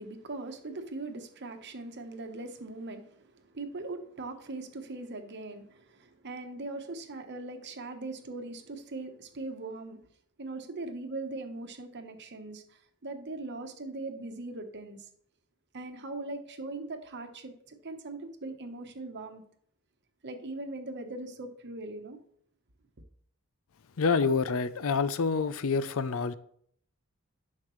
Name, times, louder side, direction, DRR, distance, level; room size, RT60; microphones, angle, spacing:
voice 1, 0.0-10.0 10.4-15.1 15.7-19.4 20.2-22.2, right 2 dB, 55° right, 1.0 m, -40 dB
voice 2, 24.0-26.3, left 5 dB, 65° left, 0.5 m, -27 dB
11.0 x 6.5 x 3.1 m
head